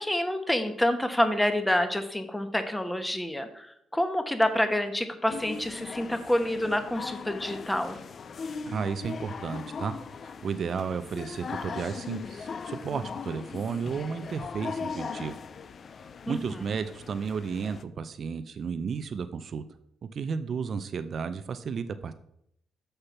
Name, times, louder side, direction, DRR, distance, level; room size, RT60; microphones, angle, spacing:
voice 1, 0.0-8.0 16.3-16.6, left 1 dB, 5° left, 8 dB, 1.1 m, -28 dB
sound 1, 5.3-17.8, left 5 dB, 50° left, 0.5 m, -39 dB
voice 2, 8.7-9.9 10.4-15.4 16.3-19.6 20.0-22.1, right 6 dB, 50° right, 11 dB, 0.5 m, -33 dB
6.8 x 5.7 x 5.7 m, 0.75 s
cardioid pair, 90°, 0 cm